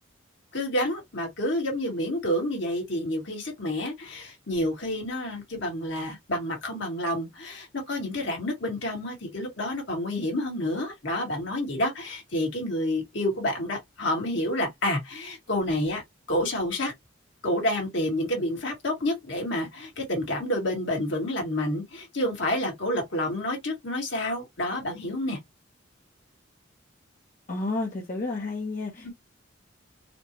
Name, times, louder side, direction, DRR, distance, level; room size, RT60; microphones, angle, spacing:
voice 1, 0.5-16.0 16.3-16.9 17.4-25.4 29.0-29.1, left 1 dB, 60° left, 1.5 m, -29 dB
voice 2, 27.5-29.1, left 2 dB, 40° left, 0.7 m, -31 dB
4.3 x 2.1 x 2.9 m
head